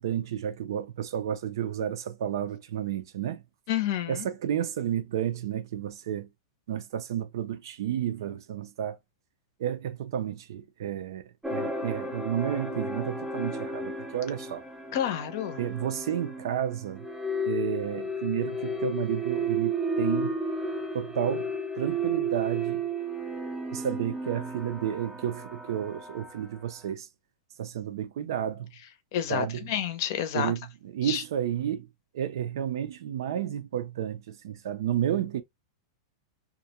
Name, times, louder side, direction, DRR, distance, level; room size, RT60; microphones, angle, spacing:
voice 1, 0.0-3.4 4.1-6.3 6.7-9.0 9.6-11.2 11.5-14.6 15.6-17.0 17.5-20.4 20.9-21.5 21.7-22.8 23.7-27.1 27.6-28.7 29.3-29.7 30.3-31.9 32.1-35.4, right 10 dB, 70° right, 0.4 m, -31 dB
voice 2, 3.7-4.3 14.9-15.6 29.1-30.5 31.0-31.2, left 10 dB, 55° left, 0.6 m, -29 dB
sound 1, 11.4-26.7, right 2 dB, 5° right, 0.4 m, -33 dB
2.4 x 2.1 x 2.7 m
supercardioid pair, 155°, 2 cm